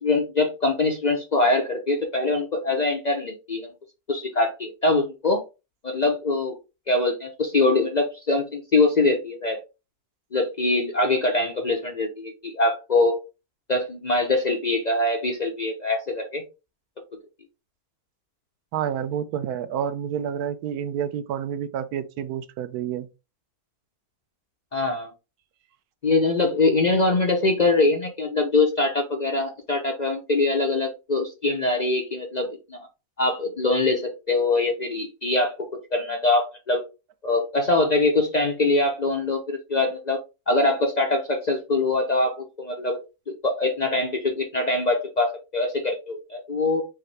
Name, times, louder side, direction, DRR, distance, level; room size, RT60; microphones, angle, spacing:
voice 1, 0.0-3.7 4.1-5.4 5.8-6.5 6.9-9.6 10.3-13.2 13.7-16.4 24.7-25.1 26.0-32.8 33.2-35.7 35.9-36.8 37.2-40.2 40.5-43.0 43.4-46.8, left 2 dB, 55° left, 0.4 m, -23 dB
voice 2, 18.7-23.1, right 9 dB, 85° right, 1.1 m, -29 dB
5.7 x 2.7 x 3.2 m
omnidirectional pair, 1.6 m